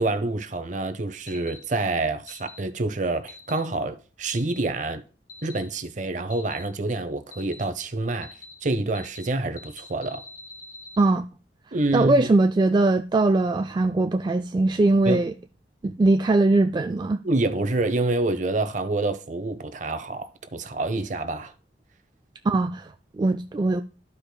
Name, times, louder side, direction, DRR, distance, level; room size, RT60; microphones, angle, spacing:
voice 1, 0.0-5.0 5.4-8.3 8.6-10.2 11.7-12.3 15.1-15.2 17.2-21.5, right 2 dB, 45° right, 0.8 m, -27 dB
sound 1, 1.3-1.6 2.3-2.6 3.3-3.6 4.3-4.6 5.3-5.6 6.3-6.6 7.3-7.6 8.2-8.5 8.9-9.3 9.6-11.0, left 3 dB, 50° left, 2.0 m, -44 dB
voice 2, 11.9-15.3 15.8-17.2 22.4-23.8, right 2 dB, 25° right, 0.3 m, -21 dB
13.5 x 4.9 x 2.2 m
head